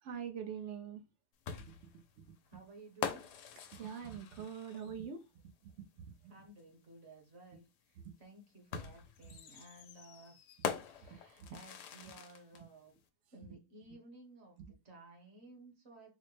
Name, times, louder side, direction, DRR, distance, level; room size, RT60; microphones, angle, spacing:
voice 1, 0.0-1.0 3.8-5.2 6.2-6.3, right 7 dB, 60° right, 0.8 m, -42 dB
sound 1, 1.5-5.1 6.6-6.7 8.7-12.6, left 7 dB, 85° left, 1.2 m, -43 dB
voice 2, 2.5-3.3 6.3-10.3 10.8-12.9 13.3-16.2, right 2 dB, 45° right, 1.3 m, -56 dB
4.1 x 2.1 x 3.1 m
omnidirectional pair, 1.7 m